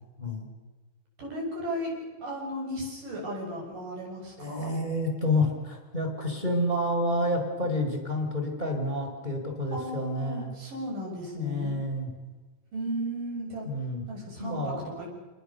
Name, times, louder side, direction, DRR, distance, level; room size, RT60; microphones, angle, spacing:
voice 1, 1.2-4.7 9.7-11.7 12.7-13.7 14.1-15.1, equal, 45° right, -2 dB, 8.6 m, -35 dB
voice 2, 4.4-10.5 11.3-12.1 13.6-14.0 14.4-14.9, left 1 dB, 10° right, 3 dB, 4.4 m, -29 dB
28.0 x 20.5 x 6.9 m, 1.3 s
omnidirectional pair, 5.1 m